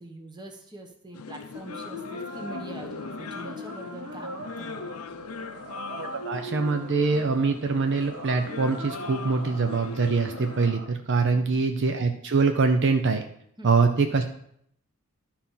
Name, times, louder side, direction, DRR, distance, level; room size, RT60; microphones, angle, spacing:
voice 1, 0.0-4.7 11.3-11.6 13.6-13.7, right 2 dB, 20° right, 3 dB, 1.2 m, -43 dB
sound 1, 1.1-10.7, left 4 dB, 80° left, 0.6 m, -40 dB
sound 2, 1.5-10.8, equal, 75° right, 2.2 m, -41 dB
voice 2, 6.0-13.2 13.6-14.3, right 4 dB, 55° right, 5 dB, 0.6 m, -24 dB
12.0 x 4.3 x 5.6 m, 0.68 s
head